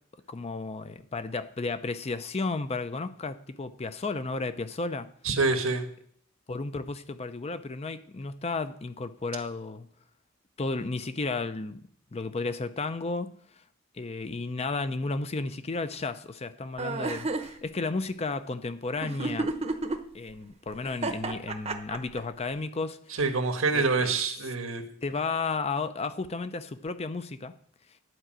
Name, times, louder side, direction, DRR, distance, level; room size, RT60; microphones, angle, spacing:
voice 1, 0.3-5.1 6.5-9.9 10.6-11.8 12.1-13.3 14.0-19.5 20.1-23.2 23.7-24.1 25.0-27.5, left 3 dB, 30° left, 0.5 m, -33 dB
voice 2, 5.2-5.8 23.2-24.9, right 3 dB, 90° right, 1.4 m, -26 dB
Girl soft laughing, 16.8-17.5 19.0-20.0 20.8-22.2, right 3 dB, 30° right, 0.8 m, -30 dB
11.0 x 5.0 x 7.5 m
head